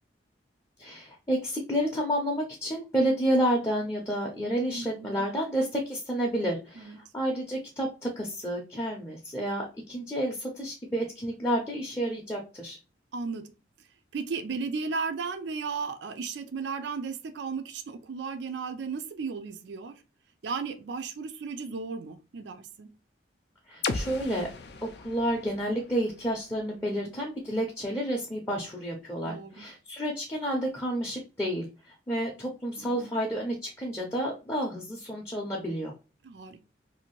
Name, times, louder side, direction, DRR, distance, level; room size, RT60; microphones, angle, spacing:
voice 1, 0.8-12.8 23.7-24.5 25.0-31.7 32.1-35.9, equal, 15° left, 0.6 m, -30 dB
voice 2, 4.7-5.2 6.8-7.0 13.1-13.4 14.1-20.0 20.4-22.9 26.6-27.1 29.2-29.7 32.8-33.1 36.2-36.6, right 5 dB, 70° right, 0.4 m, -35 dB
sound 1, 23.8-27.7, left 4 dB, 60° left, 0.4 m, -38 dB
2.7 x 2.5 x 2.9 m
head